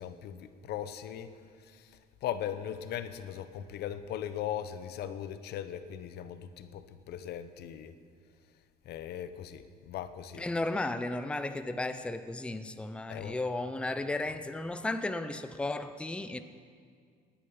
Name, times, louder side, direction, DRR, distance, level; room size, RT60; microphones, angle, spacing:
voice 1, 0.0-1.3 1.6-8.0 8.8-10.4 13.1-13.4, left 10 dB, 75° left, 11 dB, 0.9 m, -39 dB
voice 2, 10.4-16.4, left 2 dB, 5° left, 10 dB, 0.6 m, -34 dB
19.0 x 10.0 x 5.5 m, 2.1 s
cardioid pair, 110°, 17 cm